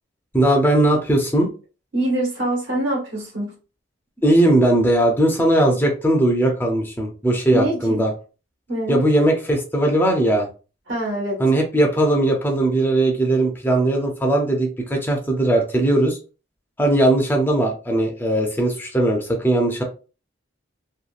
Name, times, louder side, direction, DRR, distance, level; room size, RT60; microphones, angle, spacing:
voice 1, 0.3-1.5 4.2-8.1 8.9-10.5 11.4-16.2 16.8-19.8, right 1 dB, 10° left, 0.5 m, -19 dB
voice 2, 1.9-3.5 7.5-8.0 8.7-9.0 10.9-11.4, right 1 dB, 70° right, 1.3 m, -24 dB
2.8 x 2.3 x 2.4 m
head